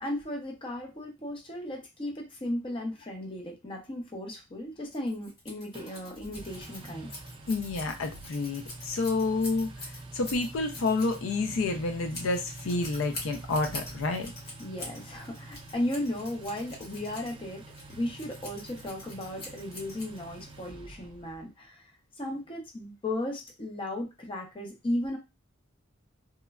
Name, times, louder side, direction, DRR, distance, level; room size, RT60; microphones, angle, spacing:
voice 1, 0.0-7.1 14.6-17.6 17.9-21.8 22.2-25.2, left 1 dB, 25° left, 1 dB, 0.6 m, -35 dB
Scissors, 4.9-20.5, left 2 dB, 55° left, 1.2 m, -45 dB
Engine, 5.7-21.4, right 2 dB, 25° right, 0.4 m, -46 dB
voice 2, 7.5-14.3, left 3 dB, 75° left, 6 dB, 0.4 m, -29 dB
3.0 x 2.1 x 2.3 m, 0.25 s
head